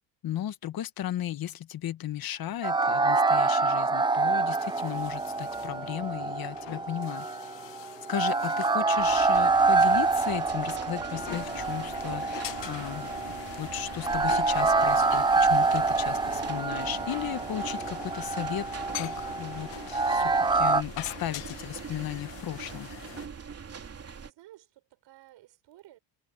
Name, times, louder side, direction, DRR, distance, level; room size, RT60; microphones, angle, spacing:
voice 1, 0.2-7.3 8.1-13.1 13.6-22.9, left 12 dB, 50° left, 1.5 m, -35 dB
sound 1, 2.6-20.8, right 3 dB, 10° right, 0.6 m, -26 dB
sound 2, 4.6-23.3, left 15 dB, 65° left, 2.0 m, -44 dB
sound 3, 9.0-24.3, right 6 dB, 30° right, 3.2 m, -43 dB
voice 2, 24.2-26.0, right 15 dB, 65° right, 6.7 m, -55 dB
cardioid pair, 110°, 46 cm